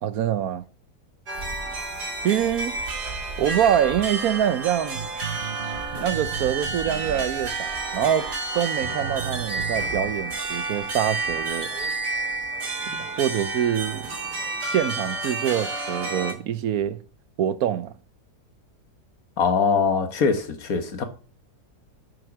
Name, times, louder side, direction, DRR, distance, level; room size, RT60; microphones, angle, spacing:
voice 1, 0.0-0.6 2.2-2.8 3.4-5.0 6.0-11.7 13.0-14.1 14.6-17.0 17.4-17.9, right 10 dB, 70° right, 1.1 m, -25 dB
sound 1, 1.3-16.3, right 3 dB, 90° right, 3.2 m, -30 dB
sound 2, 4.9-7.6 8.3-8.4 8.8-10.1, right 7 dB, 45° right, 0.9 m, -35 dB
voice 2, 19.4-21.0, left 5 dB, 65° left, 1.7 m, -22 dB
8.2 x 7.6 x 6.0 m
omnidirectional pair, 1.7 m